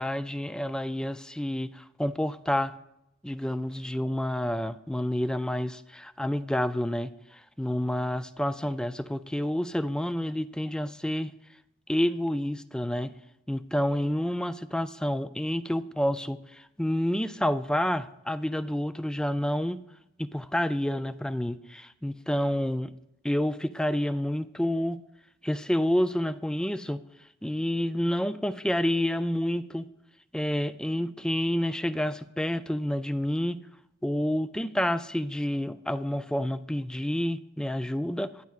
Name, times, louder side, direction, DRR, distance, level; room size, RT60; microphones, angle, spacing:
voice 1, 0.0-2.7 3.2-11.3 11.9-13.1 13.5-19.8 20.2-22.9 23.2-25.0 25.4-27.0 27.4-29.9 30.3-33.6 34.0-38.3, left 1 dB, 5° left, 12 dB, 0.3 m, -29 dB
19.5 x 12.0 x 2.4 m, 0.85 s
head